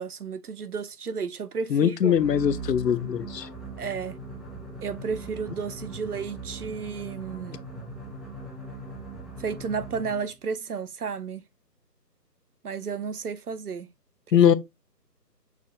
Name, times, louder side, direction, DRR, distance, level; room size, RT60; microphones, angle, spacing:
voice 1, 0.0-2.2 3.8-4.2 4.8-7.6 9.4-11.5 12.6-13.9 14.3-14.4, right 5 dB, 65° right, 0.6 m, -32 dB
voice 2, 1.7-3.5 14.3-14.5, left 9 dB, 75° left, 0.6 m, -21 dB
sound 1, 2.1-10.4, right 3 dB, ahead, 0.5 m, -40 dB
6.0 x 2.2 x 3.2 m
figure-of-eight pair, 160°, 49 cm